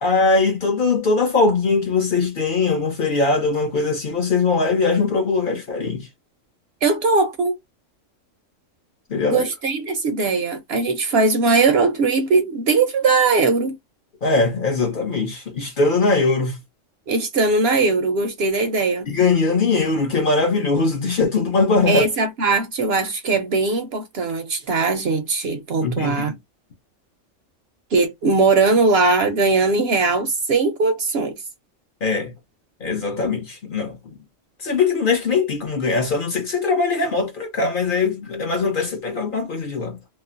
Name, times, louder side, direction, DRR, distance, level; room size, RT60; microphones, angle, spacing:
voice 1, 0.0-6.1 9.1-9.4 14.2-16.6 19.1-22.1 25.8-26.3 32.0-32.3 32.8-34.2 34.6-40.0, left 4 dB, 50° left, 0.8 m, -21 dB
voice 2, 6.8-7.6 9.2-13.8 17.1-19.1 21.9-26.3 27.9-31.4, right 3 dB, 65° right, 0.7 m, -20 dB
3.1 x 2.0 x 2.5 m
omnidirectional pair, 1.3 m